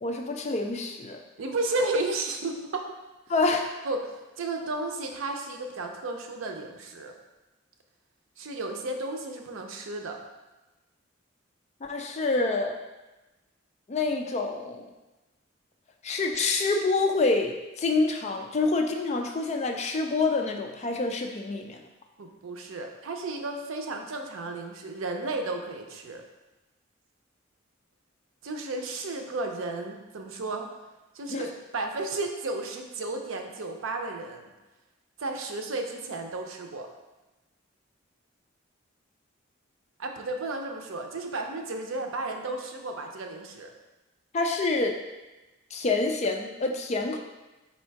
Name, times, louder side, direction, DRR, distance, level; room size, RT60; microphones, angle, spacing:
voice 1, 0.0-1.2 3.3-3.7 11.8-12.8 13.9-14.9 16.0-21.8 31.3-31.4 44.3-45.0 45.7-47.2, left 3 dB, 35° left, 3 dB, 0.4 m, -27 dB
voice 2, 1.4-2.9 3.8-7.1 8.4-10.2 22.2-26.2 28.4-30.7 31.1-34.5 35.2-36.9 40.0-43.7, right 2 dB, 85° right, 4 dB, 0.6 m, -33 dB
4.3 x 2.7 x 4.5 m, 1.1 s
head